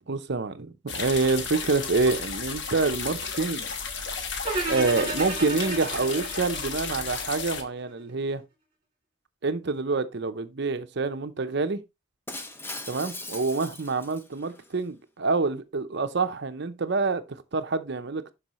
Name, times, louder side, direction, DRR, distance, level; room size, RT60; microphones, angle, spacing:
voice 1, 0.1-3.7 4.7-8.4 9.4-11.8 12.9-18.3, right 3 dB, 55° right, 0.7 m, -27 dB
sound 1, 0.9-7.6, left 5 dB, 55° left, 1.3 m, -33 dB
sound 2, 4.4-7.6, right 2 dB, 25° right, 2.8 m, -33 dB
Shatter, 12.3-14.7, left 2 dB, 10° left, 0.8 m, -40 dB
12.0 x 4.8 x 3.0 m
head